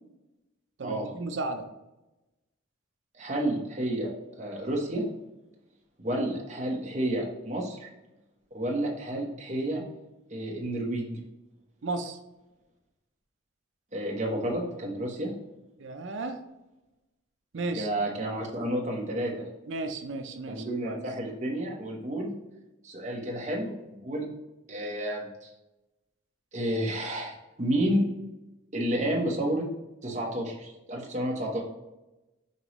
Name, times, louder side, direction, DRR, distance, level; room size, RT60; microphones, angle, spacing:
voice 1, 0.8-1.7 11.8-12.2 15.8-16.4 17.5-17.9 19.7-21.0, right 3 dB, 70° right, 6 dB, 0.5 m, -34 dB
voice 2, 3.2-4.1 4.4-5.0 6.0-7.9 8.5-9.8 10.3-11.2 13.9-15.3 17.7-19.3 20.5-22.3 22.8-24.3 24.7-25.5 26.5-28.1 28.7-29.7 30.0-31.6, right 1 dB, 35° right, -1 dB, 1.0 m, -30 dB
5.5 x 3.0 x 3.0 m, 1.0 s
head